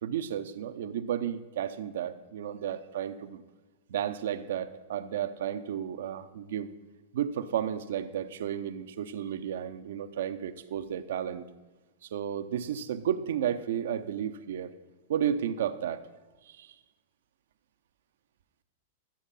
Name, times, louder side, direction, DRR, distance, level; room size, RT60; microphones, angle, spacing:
voice 1, 0.0-3.4 3.9-6.7 7.1-11.4 12.0-14.7 15.1-16.0 16.4-16.7, right 9 dB, 60° right, 12 dB, 0.7 m, -33 dB
13.0 x 8.1 x 5.5 m, 1.2 s
figure-of-eight pair, 95°, 0 cm